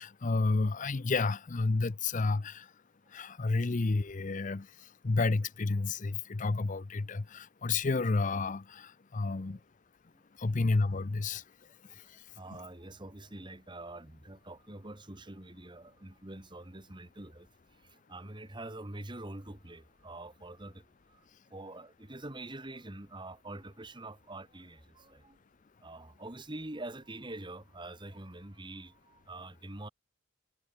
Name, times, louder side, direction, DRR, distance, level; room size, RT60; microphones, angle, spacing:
voice 1, 0.0-2.7 3.1-9.6 10.4-11.4 11.9-12.2, left 3 dB, 35° left, 0.6 m, -31 dB
voice 2, 12.3-17.5 17.8-21.2 21.5-25.4 25.8-29.9, right 2 dB, 20° right, 1.7 m, -45 dB
head